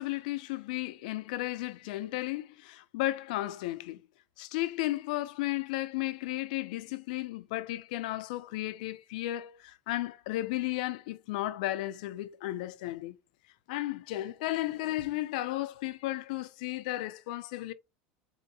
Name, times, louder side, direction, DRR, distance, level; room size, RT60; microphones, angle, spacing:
voice 1, 0.0-4.0 4.4-13.2 13.7-17.7, left 16 dB, 75° left, 0.5 m, -34 dB
4.3 x 2.7 x 2.7 m
cardioid pair, 180°, 4 cm